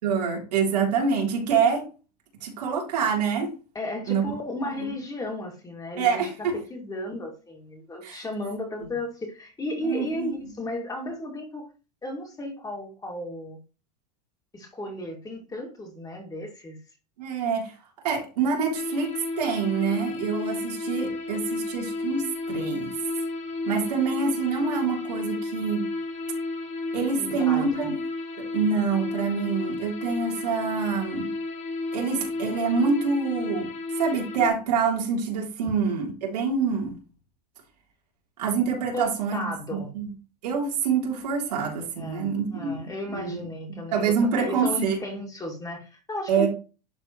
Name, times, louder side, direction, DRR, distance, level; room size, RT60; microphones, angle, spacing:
voice 1, 0.0-1.9 2.4-3.5 4.1-4.2 4.6-5.0 6.0-6.6 8.0-8.2 9.8-10.3 17.2-17.7 18.0-22.9 23.6-25.9 26.9-28.0 28.5-31.3 31.9-33.7 34.0-37.0 38.4-40.1 40.4-45.0 46.3-46.5, right 5 dB, 75° right, 3.4 m, -26 dB
voice 2, 3.7-6.2 6.5-11.7 12.0-13.6 14.5-16.8 27.2-27.6 38.9-39.9 42.0-46.5, left 1 dB, 20° left, 2.4 m, -34 dB
sound 1, 18.7-34.5, left 2 dB, 35° left, 2.2 m, -32 dB
11.0 x 4.1 x 3.1 m
hypercardioid pair, 105°, 20 cm